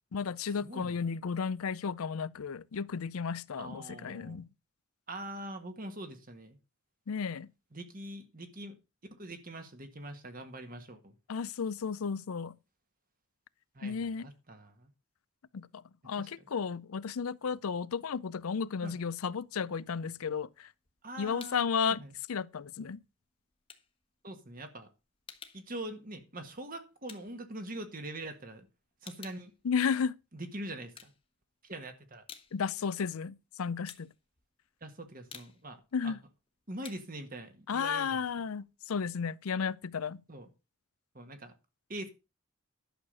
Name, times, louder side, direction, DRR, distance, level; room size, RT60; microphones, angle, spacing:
voice 1, 0.1-4.5 7.1-7.5 11.3-12.6 13.8-14.3 15.5-20.7 21.2-22.0 22.3-23.0 29.6-30.1 32.5-34.1 35.9-36.2 37.7-40.2, left 6 dB, 80° left, 0.5 m, -33 dB
voice 2, 0.6-1.0 3.6-4.4 5.1-6.6 7.7-8.8 9.1-11.1 13.7-14.9 16.2-16.3 18.8-19.0 21.0-22.1 24.2-24.9 25.5-28.7 29.0-29.5 30.3-31.1 31.6-32.2 34.8-36.1 36.7-38.2 40.3-40.5 41.1-41.5 41.9-42.1, right 1 dB, 40° right, 1.7 m, -43 dB
sound 1, 20.5-21.8 22.1-28.3 28.6-30.4 30.8-31.7 32.0-38.7, left 6 dB, 25° left, 1.1 m, -54 dB
11.5 x 6.6 x 5.4 m
head